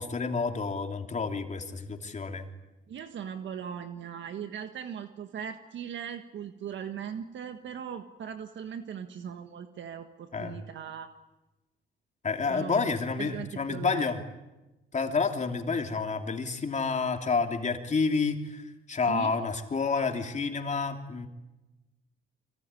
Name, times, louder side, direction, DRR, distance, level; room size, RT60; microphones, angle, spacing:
voice 1, 0.0-2.5 10.3-10.6 12.2-14.2 14.9-21.3, left 4 dB, 35° left, 4 dB, 3.2 m, -29 dB
voice 2, 2.9-11.1 12.5-12.9 13.2-14.1 19.1-19.3, right 8 dB, 70° right, 7 dB, 1.5 m, -39 dB
25.0 x 24.0 x 9.8 m, 1.0 s
cardioid pair, 90°, 20 cm